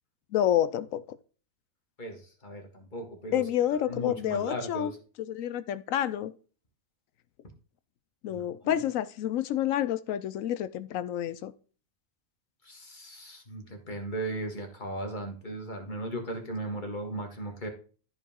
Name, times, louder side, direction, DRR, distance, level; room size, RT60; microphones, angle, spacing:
voice 1, 0.3-1.2 3.3-4.9 5.3-6.3 8.2-11.5, left 11 dB, 75° left, 1.0 m, -29 dB
voice 2, 2.0-3.4 3.9-5.0 8.3-8.8 12.6-17.7, right 1 dB, 35° left, 1.9 m, -37 dB
13.5 x 4.9 x 3.6 m
omnidirectional pair, 1.4 m